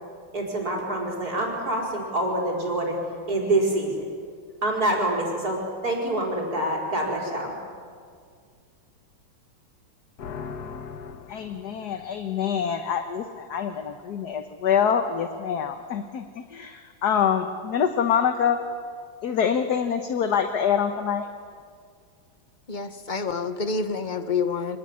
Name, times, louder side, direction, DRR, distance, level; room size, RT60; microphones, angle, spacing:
voice 1, 0.3-3.0 3.3-4.0 4.6-7.5, right 1 dB, 45° right, -1 dB, 5.2 m, -26 dB
voice 2, 10.2-18.6 19.2-21.3, left 7 dB, 55° left, 7 dB, 1.5 m, -26 dB
voice 3, 22.7-24.8, left 4 dB, 30° left, 9 dB, 1.1 m, -28 dB
25.0 x 20.0 x 9.6 m, 2.1 s
omnidirectional pair, 2.2 m